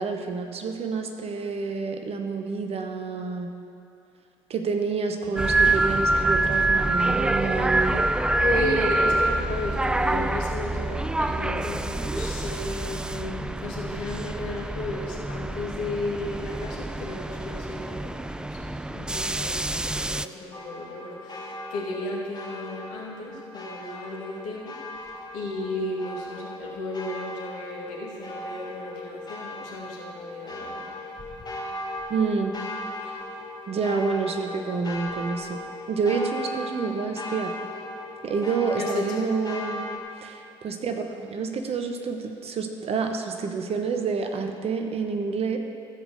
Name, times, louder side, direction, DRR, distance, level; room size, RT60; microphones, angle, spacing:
voice 1, 0.0-3.5 4.5-8.0 32.1-32.6 33.7-35.6 35.9-37.5 38.2-39.8 40.2-45.6, right 4 dB, 45° right, 5 dB, 1.1 m, -28 dB
sound 1, 5.4-20.3, right 2 dB, 5° right, 0.3 m, -26 dB
voice 2, 7.8-8.1 8.4-24.8 25.3-30.8 38.8-39.3, left 2 dB, 70° left, -3 dB, 2.3 m, -34 dB
sound 2, 20.5-40.0, left 1 dB, 30° left, 2.0 m, -38 dB
14.5 x 5.2 x 6.5 m, 2.5 s
hypercardioid pair, 55°, 14 cm